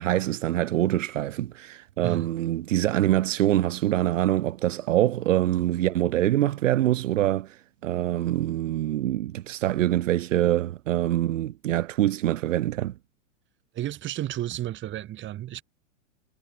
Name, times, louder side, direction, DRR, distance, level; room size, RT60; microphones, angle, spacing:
voice 1, 0.0-7.6 7.8-12.9, right 13 dB, 70° right, 1.9 m, -24 dB
voice 2, 13.7-15.6, right 13 dB, 30° right, 3.2 m, -32 dB
hypercardioid pair, 120°, 39 cm